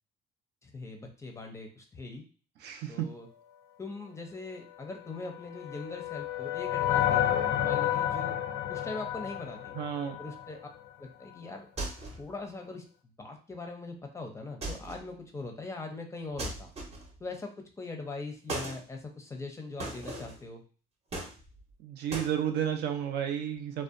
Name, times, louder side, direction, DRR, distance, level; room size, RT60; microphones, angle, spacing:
voice 1, 0.6-2.3 2.9-3.3 3.8-8.4 8.7-9.7 10.2-10.6 11.0-11.7 12.1-12.8 13.2-16.7 17.2-17.5 17.8-20.6, left 3 dB, 15° left, 3 dB, 0.5 m, -41 dB
voice 2, 2.6-3.1 9.8-10.2 21.8-23.8, right 9 dB, 75° right, 5 dB, 0.5 m, -32 dB
sound 1, 5.2-10.6, left 11 dB, 80° left, 0.4 m, -30 dB
sound 2, 11.8-12.3 14.6-15.1 16.4-17.2 18.5-18.8 19.8-20.4 21.1-21.7 22.1-22.3, right 2 dB, 40° right, 0.7 m, -38 dB
2.6 x 2.1 x 2.5 m, 0.39 s
cardioid pair, 110°, 17 cm